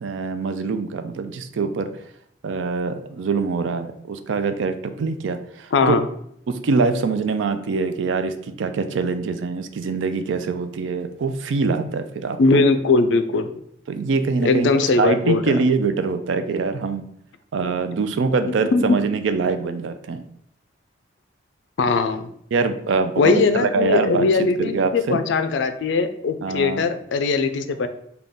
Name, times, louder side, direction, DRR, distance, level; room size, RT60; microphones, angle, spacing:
voice 1, 0.0-1.9 2.4-6.0 6.5-12.4 13.9-14.7 15.0-17.0 17.5-20.2 22.5-24.3 24.6-25.2 26.4-26.9, right 4 dB, 80° right, 9 dB, 0.4 m, -24 dB
voice 2, 5.7-6.1 12.4-13.5 14.4-15.6 18.5-19.0 21.8-22.3 23.2-27.9, left 4 dB, 70° left, 9 dB, 0.4 m, -20 dB
3.8 x 2.3 x 3.5 m, 0.70 s
head